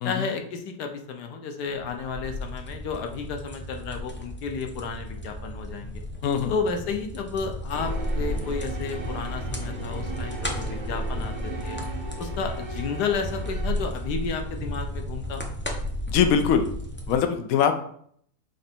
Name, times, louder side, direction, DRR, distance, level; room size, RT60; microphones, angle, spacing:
voice 1, 0.0-6.0 6.5-11.8 12.2-15.5, left 5 dB, 85° left, 4 dB, 1.4 m, -32 dB
sound 1, 1.8-17.2, equal, 15° left, 0.4 m, -33 dB
voice 2, 6.2-6.5 16.1-16.7 17.1-17.7, left 7 dB, 65° left, 7 dB, 1.1 m, -22 dB
sound 2, 7.7-14.3, right 3 dB, 30° right, 1.2 m, -38 dB
6.6 x 3.9 x 4.4 m, 0.64 s
omnidirectional pair, 1.7 m